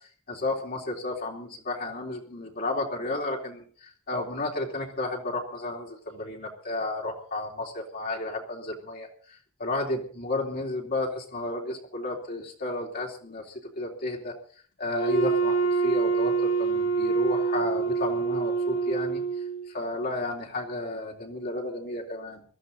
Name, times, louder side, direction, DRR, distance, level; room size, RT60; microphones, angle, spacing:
voice 1, 0.3-9.1 9.6-14.3 14.8-19.2 19.7-22.4, left 2 dB, 50° left, -1 dB, 3.4 m, -32 dB
Wind instrument woodwind instrument, 14.9-19.7, right 4 dB, 75° left, 3.2 m, -26 dB
22.0 x 14.0 x 4.0 m, 0.43 s
head